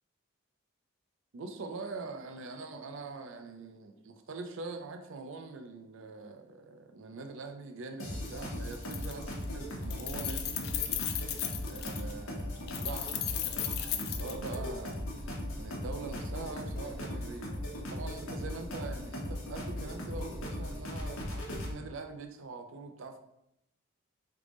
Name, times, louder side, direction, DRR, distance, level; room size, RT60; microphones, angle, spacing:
voice 1, 1.3-10.6 11.6-13.3 13.8-23.2, right 3 dB, 65° right, 5 dB, 0.4 m, -43 dB
sound 1, 8.0-21.7, left 1 dB, 80° left, 1.1 m, -38 dB
Keys jangling, 8.3-8.4 8.7-9.4 9.7-12.1 12.7-14.9, left 11 dB, 50° left, 0.3 m, -36 dB
3.3 x 3.3 x 3.7 m, 0.82 s
head